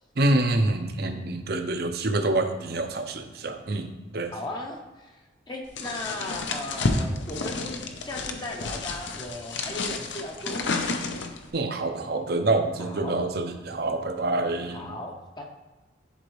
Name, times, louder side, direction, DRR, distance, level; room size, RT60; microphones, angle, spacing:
voice 1, 0.2-4.3 11.5-14.9, right 2 dB, 55° right, 7 dB, 0.7 m, -26 dB
voice 2, 4.3-5.2 5.5-10.6 12.8-13.2 14.7-15.4, left 1 dB, 25° left, 1 dB, 0.6 m, -37 dB
sound 1, 5.8-11.5, left 3 dB, 75° left, 0.7 m, -30 dB
11.0 x 3.9 x 3.2 m, 1.2 s
head